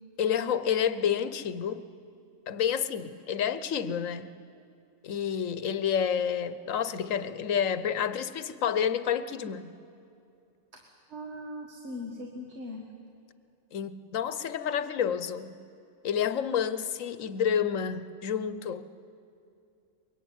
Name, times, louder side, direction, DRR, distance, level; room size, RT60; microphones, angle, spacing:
voice 1, 0.2-1.9 2.5-4.3 5.0-9.8 13.7-15.6 16.0-18.8, left 8 dB, 80° left, 14 dB, 1.3 m, -29 dB
voice 2, 10.7-12.9, left 1 dB, 55° right, 2 dB, 2.1 m, -40 dB
23.5 x 22.0 x 9.3 m, 2.6 s
omnidirectional pair, 1.3 m